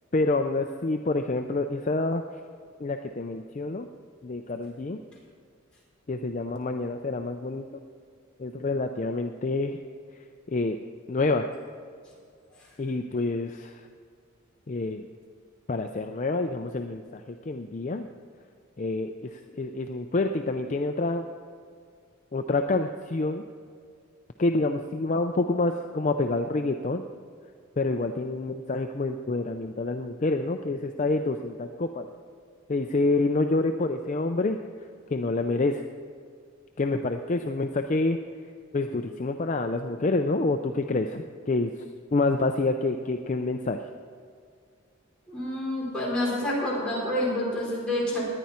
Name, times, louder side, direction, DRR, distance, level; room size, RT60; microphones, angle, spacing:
voice 1, 0.1-2.2 2.8-3.9 4.2-5.0 6.1-7.7 8.4-9.8 10.5-10.8 11.1-11.5 12.8-13.9 14.7-15.1 15.7-18.1 18.8-21.3 22.3-23.4 24.4-27.0 27.8-32.1 32.7-34.6 35.1-35.8 36.8-38.2 38.7-41.8 42.1-43.8, left 2 dB, 35° left, 6 dB, 0.4 m, -27 dB
voice 2, 45.3-48.3, left 1 dB, 5° left, -8 dB, 4.4 m, -28 dB
18.5 x 10.5 x 4.3 m, 2.2 s
head